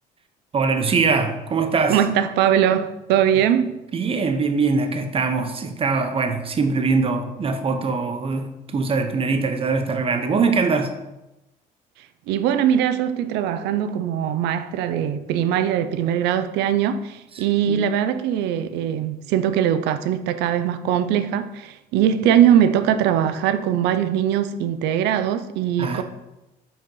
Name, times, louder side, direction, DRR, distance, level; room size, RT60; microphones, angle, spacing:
voice 1, 0.5-2.0 3.9-10.9 17.3-17.9 25.8-26.0, right 4 dB, 35° right, 0.9 m, -22 dB
voice 2, 1.9-3.8 12.3-26.0, right 10 dB, 90° right, 0.5 m, -21 dB
5.6 x 4.3 x 5.4 m
cardioid pair, 110°, 17 cm